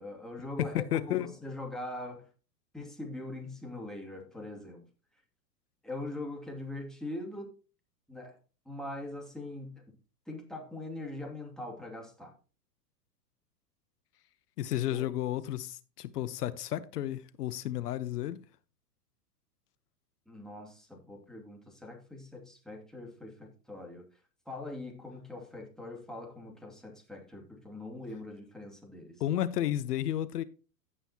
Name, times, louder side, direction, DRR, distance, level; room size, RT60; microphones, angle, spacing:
voice 1, 0.0-2.3 2.7-4.9 5.8-7.5 8.1-8.4 8.7-9.9 10.3-12.3 14.9-15.0 20.3-24.1 24.5-29.2, left 2 dB, ahead, 2.5 m, -42 dB
voice 2, 0.6-1.3 14.6-18.4 29.2-30.4, left 12 dB, 70° left, 1.1 m, -32 dB
16.0 x 5.6 x 2.9 m
hypercardioid pair, 115°, 48 cm